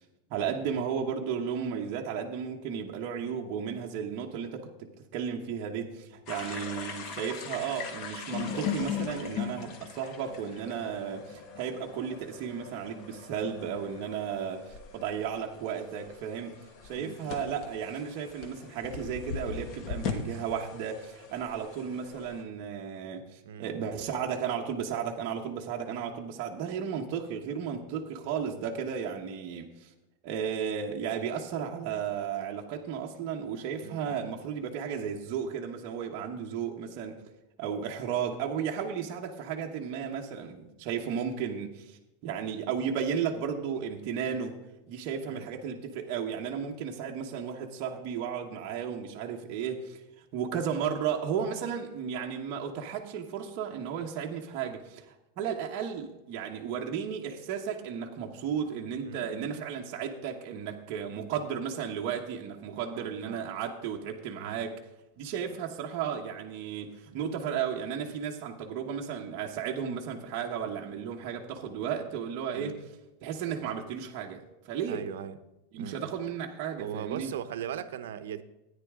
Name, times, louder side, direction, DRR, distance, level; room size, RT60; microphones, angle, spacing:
voice 1, 0.3-29.9 30.2-37.2 37.6-44.6 44.9-64.8 65.2-72.8 73.2-75.1 75.7-77.3, right 7 dB, 35° right, 1.0 m, -34 dB
sound 1, 6.3-22.4, left 7 dB, 35° left, 1.1 m, -40 dB
voice 2, 16.9-17.4 23.4-23.9 33.8-34.2 45.2-45.5 59.0-59.5 62.9-63.4 64.4-64.7 65.5-65.6 67.1-67.2 72.5-72.9 74.9-75.4 75.8-76.1 76.8-78.4, right 9 dB, 85° right, 0.7 m, -40 dB
13.5 x 9.7 x 3.6 m
supercardioid pair, 170°, 0 cm